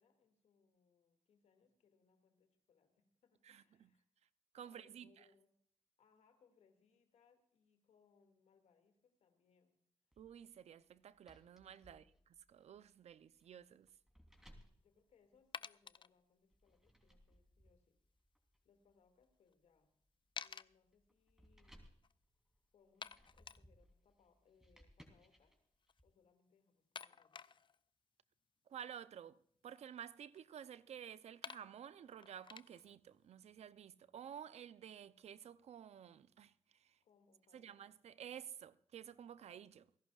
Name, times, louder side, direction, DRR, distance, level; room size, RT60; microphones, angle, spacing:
voice 1, 0.0-4.0 4.6-5.5 6.0-9.8 11.9-12.2 14.8-18.0 18.6-19.9 20.3-21.9 22.7-25.6 26.0-27.6 37.0-37.9 38.1-38.2, left 6 dB, 80° left, 2.3 m, -74 dB
voice 2, 3.4-3.9 4.5-5.3 10.2-12.0 12.5-13.9 28.7-29.4 29.6-37.0 37.5-39.9, right 9 dB, 75° right, 0.6 m, -53 dB
sound 1, 10.1-15.9 16.5-26.0, equal, 5° right, 3.4 m, -67 dB
sound 2, 14.4-14.5 15.5-16.1 19.2-19.3 19.5-19.6 20.4-20.7 21.7-21.8 22.0-22.1 23.0-23.6 25.8-26.0 27.0-27.8 29.3-30.4 31.1-31.2 31.4-33.0, left 6 dB, 45° left, 0.4 m, -51 dB
29.0 x 11.5 x 2.4 m
supercardioid pair, 50°, 11 cm